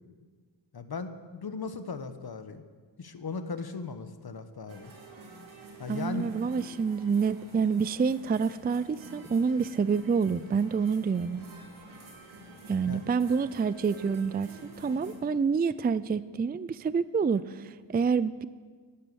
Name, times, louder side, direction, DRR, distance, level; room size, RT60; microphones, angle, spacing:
voice 1, 0.7-2.6 3.0-4.9 5.8-6.3 12.9-13.0, left 4 dB, 55° left, 9 dB, 1.1 m, -37 dB
sound 1, 4.7-15.1, right 1 dB, 85° right, 2.9 m, -49 dB
voice 2, 5.9-11.5 12.7-14.5 14.8-18.4, right 5 dB, 20° right, 16 dB, 0.4 m, -27 dB
11.5 x 11.0 x 7.0 m, 1.5 s
cardioid pair, 60°, 46 cm